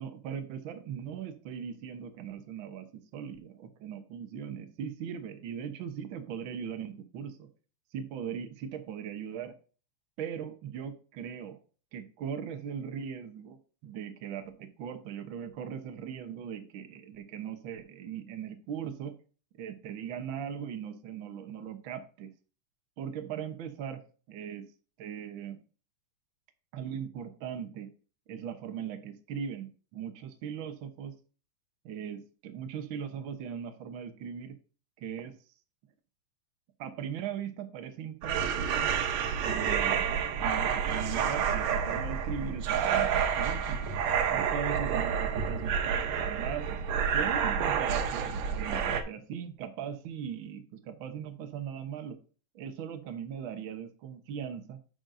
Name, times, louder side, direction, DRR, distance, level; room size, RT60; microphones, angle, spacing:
voice 1, 0.0-2.8 3.1-7.5 7.9-9.5 10.2-11.6 11.9-13.6 13.8-19.2 19.6-22.3 23.0-24.0 24.3-24.6 25.0-25.6 26.7-27.9 28.3-31.1 31.8-34.5 35.0-35.4 36.8-38.9 39.4-44.0 44.3-45.7 46.0-46.8 47.1-52.2 52.5-54.8, right 8 dB, 85° right, 7 dB, 1.1 m, -39 dB
sound 1, 38.2-49.0, right 7 dB, 65° right, 2.0 m, -29 dB
10.5 x 6.4 x 2.7 m, 0.38 s
omnidirectional pair, 3.7 m